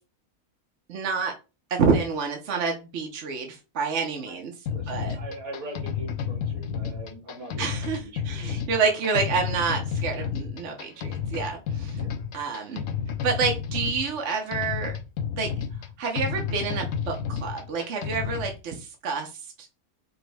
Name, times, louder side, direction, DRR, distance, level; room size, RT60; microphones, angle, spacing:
voice 1, 0.9-1.3 1.7-4.5 4.9-5.2 7.6-12.1 12.3-12.8 13.2-15.0 15.3-15.5 16.0-19.3, right 5 dB, 55° right, 2 dB, 1.1 m, -28 dB
voice 2, 4.3-8.6 12.0-12.1, right 1 dB, 70° right, 2 dB, 1.8 m, -42 dB
sound 1, 4.7-18.6, left 7 dB, 65° left, 0.9 m, -31 dB
5.0 x 2.2 x 4.7 m, 0.29 s
omnidirectional pair, 1.5 m